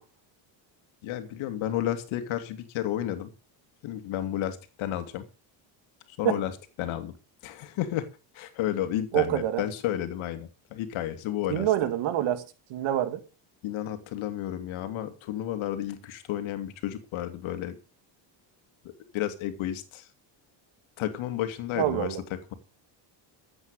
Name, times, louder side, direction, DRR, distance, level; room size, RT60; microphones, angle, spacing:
voice 1, 1.0-3.3 3.8-5.3 6.2-6.5 6.8-7.2 7.4-8.1 8.3-11.7 13.6-17.8 19.1-20.1 21.0-22.2, left 12 dB, 75° left, 2.6 m, -32 dB
voice 2, 9.1-9.7 11.5-12.4 12.7-13.2 21.8-22.2, right 12 dB, 70° right, 2.4 m, -26 dB
14.0 x 8.8 x 6.8 m
cardioid pair, 120°, 48 cm